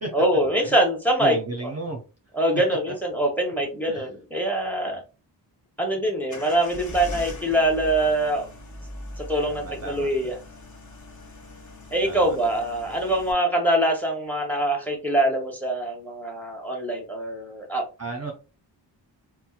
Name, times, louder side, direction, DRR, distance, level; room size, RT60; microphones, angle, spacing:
voice 1, 0.1-1.4 1.6-1.7 2.3-5.0 5.8-8.5 9.2-10.4 11.9-17.8, right 1 dB, 5° left, 1 dB, 0.8 m, -24 dB
voice 2, 1.2-2.0 2.7-2.8 3.9-4.1 9.5-10.1 12.1-12.4 18.0-18.3, right 2 dB, 35° right, 2 dB, 0.6 m, -33 dB
sound 1, 6.3-13.3, left 1 dB, 40° left, 0.9 m, -40 dB
4.2 x 2.1 x 2.4 m, 0.32 s
wide cardioid pair, 115°, 44 cm